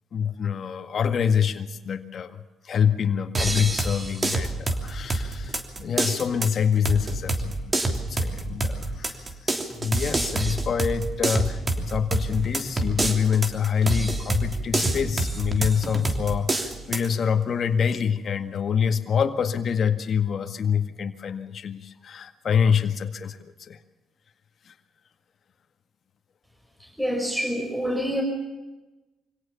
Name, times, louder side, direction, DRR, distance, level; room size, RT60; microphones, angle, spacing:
voice 1, 0.1-9.5 9.8-23.8 24.7-24.8, left 7 dB, 55° left, 7 dB, 1.9 m, -26 dB
sound 1, 3.3-17.1, right 2 dB, 25° right, 3.1 m, -27 dB
voice 2, 27.0-28.2, equal, 5° right, 2 dB, 5.7 m, -26 dB
25.0 x 17.5 x 7.1 m, 1.1 s
cardioid pair, 90°, 0 cm